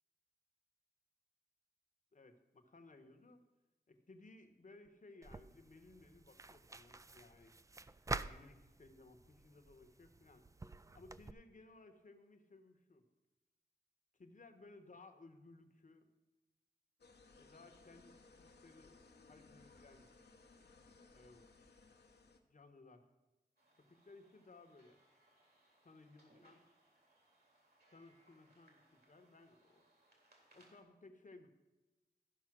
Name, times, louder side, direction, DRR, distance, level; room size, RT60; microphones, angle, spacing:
voice 1, 2.1-3.4 3.9-7.5 8.1-10.5 10.9-13.0 14.2-16.1 17.4-20.1 21.1-21.5 22.5-23.1 23.8-25.0 25.8-26.6 27.9-29.9 30.5-31.5, left 2 dB, 50° left, 7 dB, 1.1 m, -60 dB
sound 1, 5.2-11.3, right 2 dB, 20° right, 0.4 m, -48 dB
sound 2, 17.0-22.4, left 3 dB, 75° left, 1.0 m, -63 dB
sound 3, 23.6-30.8, right 1 dB, 65° right, 3.2 m, -71 dB
13.5 x 5.6 x 6.0 m, 1.1 s
wide cardioid pair, 65°, 17 cm